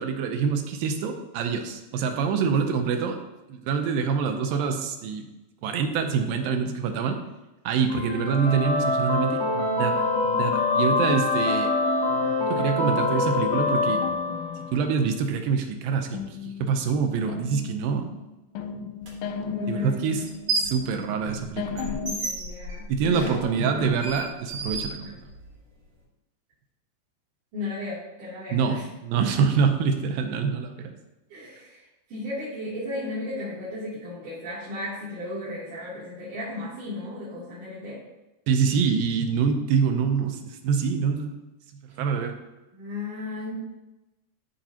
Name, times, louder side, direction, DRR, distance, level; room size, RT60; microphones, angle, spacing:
voice 1, 0.0-3.2 3.5-5.3 5.6-7.2 7.7-11.7 12.5-14.0 14.7-18.1 19.7-20.3 20.6-22.0 22.9-25.2 28.5-30.9 38.5-41.4 42.0-42.4, right 6 dB, 80° right, 5 dB, 2.0 m, -25 dB
sound 1, 7.9-14.9, left 3 dB, 70° left, 1.0 m, -25 dB
sound 2, 11.5-12.5 14.0-15.3 16.1-22.1, left 6 dB, 90° left, 2.8 m, -36 dB
sound 3, 19.0-19.1 20.2-20.8 21.2-25.6, right 3 dB, 30° right, 3.5 m, -32 dB
voice 2, 19.5-20.1 22.0-23.9 25.0-25.1 27.5-28.8 31.3-38.0 42.7-43.5, left 2 dB, 50° right, -13 dB, 4.0 m, -35 dB
14.0 x 5.7 x 2.9 m, 1.0 s
omnidirectional pair, 4.9 m